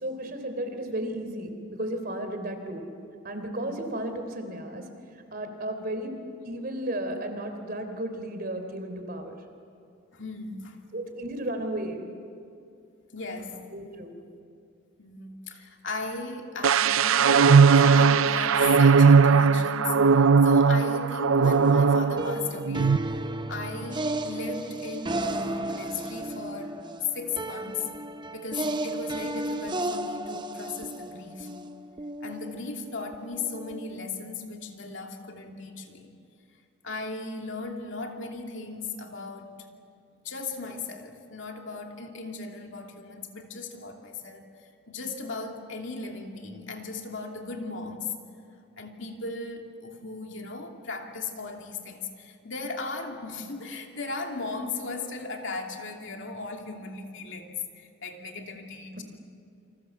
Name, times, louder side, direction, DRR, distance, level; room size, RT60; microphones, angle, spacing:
voice 1, 0.0-2.8 3.2-4.8 5.3-6.2 6.5-9.4 10.9-12.0 13.7-14.1, right 1 dB, 45° right, 6 dB, 3.6 m, -33 dB
voice 2, 10.1-10.8 13.1-13.7 15.0-23.0 23.5-26.8 27.1-27.9 28.3-31.5 32.2-36.1 36.8-39.6 40.2-44.5 44.9-48.1 48.8-59.0, left 3 dB, 60° left, 2 dB, 2.8 m, -37 dB
sound 1, 16.6-22.4 22.7-23.0, right 5 dB, 80° right, 0.5 m, -18 dB
sound 2, 21.4-34.1, right 1 dB, 20° right, 0.8 m, -34 dB
29.0 x 26.5 x 7.2 m, 2.5 s
head